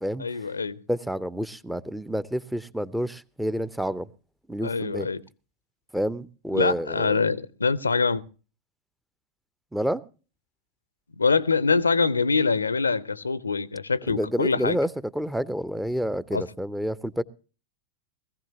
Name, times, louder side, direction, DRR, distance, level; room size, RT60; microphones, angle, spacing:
voice 1, 0.2-0.8 4.6-5.2 6.5-8.2 11.2-14.8 16.3-16.4, left 4 dB, 75° left, 0.7 m, -24 dB
voice 2, 0.9-4.1 4.5-5.1 5.9-7.2 9.7-10.0 14.1-17.2, equal, 5° right, 0.7 m, -29 dB
21.0 x 15.5 x 2.8 m
figure-of-eight pair, 90°, 0 cm